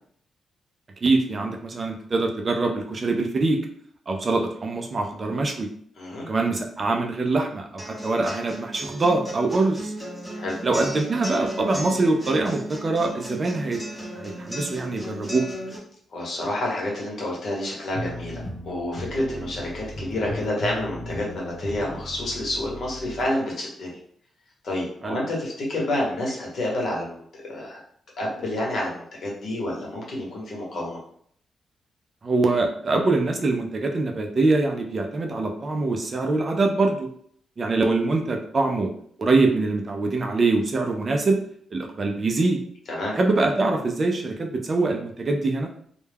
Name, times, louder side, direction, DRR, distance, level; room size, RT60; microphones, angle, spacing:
voice 1, 1.0-3.6 4.1-5.7 6.3-9.9 10.6-13.8 14.2-15.5 19.2-19.5 25.0-25.2 32.2-37.1 37.6-38.9 39.2-41.4 41.7-42.6 43.1-45.7, right 3 dB, 35° right, 3 dB, 0.4 m, -24 dB
sound 1, 7.8-15.8, equal, ahead, 0.8 m, -35 dB
voice 2, 16.1-24.0 24.6-27.2 27.5-27.8 28.2-31.0 42.9-43.1, left 1 dB, 60° left, -3 dB, 0.9 m, -29 dB
sound 2, 17.9-23.3, equal, 40° left, 0.6 m, -36 dB
2.2 x 2.1 x 3.3 m, 0.63 s
cardioid pair, 120°, 0 cm